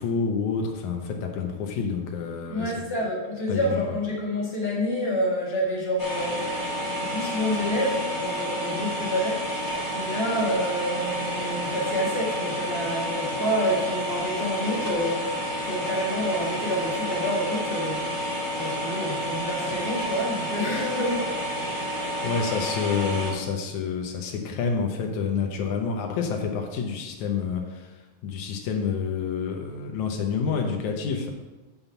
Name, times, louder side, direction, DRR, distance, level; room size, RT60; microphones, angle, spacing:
voice 1, 0.0-2.7 3.5-3.8 22.2-31.3, left 5 dB, 80° left, 3 dB, 1.7 m, -28 dB
voice 2, 2.5-6.4 7.0-9.5 9.9-15.2 15.6-18.1 18.5-21.3, equal, 50° left, -5 dB, 0.7 m, -28 dB
sound 1, 6.0-23.3, equal, 10° left, 1.3 m, -30 dB
6.9 x 5.6 x 7.1 m, 1.2 s
omnidirectional pair, 4.5 m